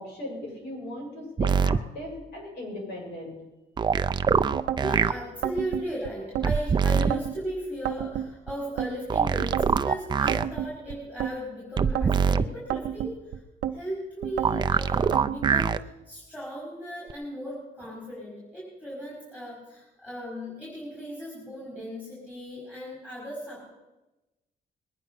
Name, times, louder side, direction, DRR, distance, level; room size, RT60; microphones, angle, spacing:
voice 1, 0.0-3.4, left 1 dB, 85° left, -1 dB, 7.0 m, -38 dB
sound 1, 1.4-1.8 3.8-5.1 6.4-7.1 9.1-10.5 11.8-12.5 14.4-15.8 17.1-17.2, right 6 dB, 25° right, 0.4 m, -23 dB
sound 2, 4.5-4.9 5.4-6.5 6.9-7.4 7.8-8.9 9.4-9.8 10.3-11.3 11.8-12.2 12.7-13.8 14.2-14.6 15.1-15.6, right 10 dB, 85° right, 0.7 m, -31 dB
voice 2, 4.8-13.2 13.7-23.7, equal, 10° left, -6 dB, 5.4 m, -36 dB
21.0 x 10.0 x 5.7 m, 1.0 s
cardioid pair, 125°, 17 cm